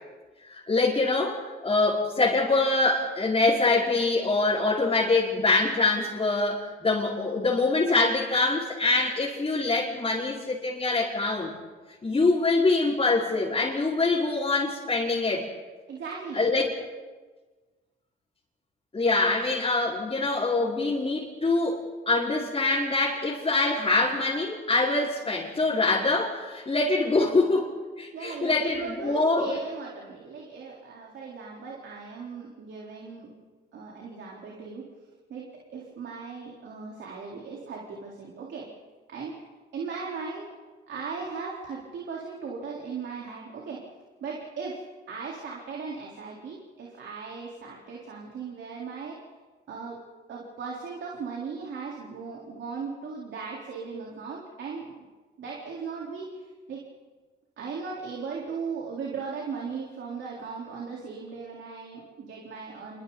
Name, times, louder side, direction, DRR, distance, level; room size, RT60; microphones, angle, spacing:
voice 1, 0.4-11.5 12.0-15.4 16.3-16.7 18.9-27.7 28.0-29.6, left 3 dB, 30° left, -7 dB, 5.0 m, -24 dB
voice 2, 15.9-16.4 28.1-33.3 33.7-34.8 35.3-35.4 35.7-38.7 39.1-39.4 39.7-40.5 40.9-43.8 44.2-44.8 45.1-49.2 49.7-50.0 50.3-55.1 55.4-56.8 57.6-63.0, right 5 dB, 65° right, -3 dB, 4.1 m, -37 dB
28.5 x 24.0 x 4.1 m, 1.3 s
cardioid pair, 90°, 20 cm